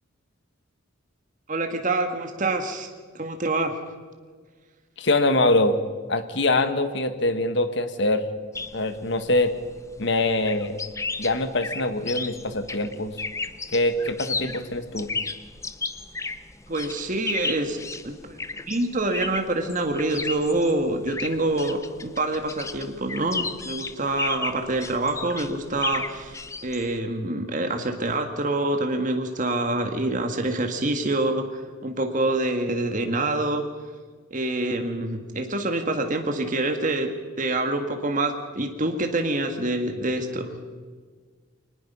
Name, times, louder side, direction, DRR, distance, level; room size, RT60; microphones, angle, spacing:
voice 1, 1.5-2.9 3.1-3.8 14.4-14.5 16.7-17.8 18.0-18.4 18.7-33.6 34.3-37.1 37.4-40.5, right 2 dB, 40° right, 5 dB, 1.7 m, -26 dB
voice 2, 5.0-5.8 6.1-8.2 8.7-9.5 10.0-10.8 11.2-13.1 13.7-15.1, left 2 dB, 60° left, 9 dB, 1.5 m, -23 dB
sound 1, 8.5-27.0, left 4 dB, 15° left, 0.7 m, -34 dB
23.5 x 20.0 x 5.5 m, 1.6 s
head